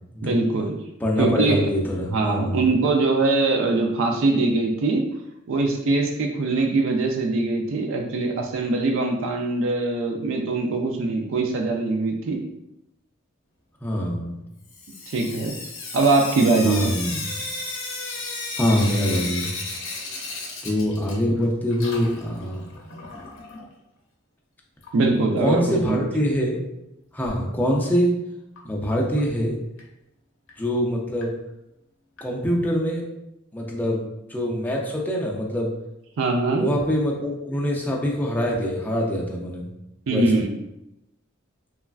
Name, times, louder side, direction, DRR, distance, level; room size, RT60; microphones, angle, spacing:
voice 1, 0.2-0.8 1.2-1.7 2.1-5.0 5.5-12.4 15.1-15.6 15.9-17.0 24.9-26.0 36.2-36.7 40.1-40.6, right 3 dB, 65° right, 2 dB, 0.4 m, -22 dB
voice 2, 1.0-2.6 13.8-14.4 16.6-17.2 18.6-19.5 20.6-22.6 25.4-26.6 27.1-28.1 28.6-29.6 30.6-31.3 32.2-33.0 33.5-35.7 36.6-39.7 40.1-40.4, equal, 10° left, -2 dB, 0.4 m, -24 dB
Sink (filling or washing) / Drip, 14.7-21.4 21.7-23.6 24.8-24.9 25.2-25.3 25.6-25.7 28.6-28.7 29.2-29.3 29.8-29.9 30.5-30.6 31.2-31.3 32.2-32.3, left 3 dB, 65° left, 0.6 m, -34 dB
3.1 x 2.3 x 2.3 m, 0.87 s
head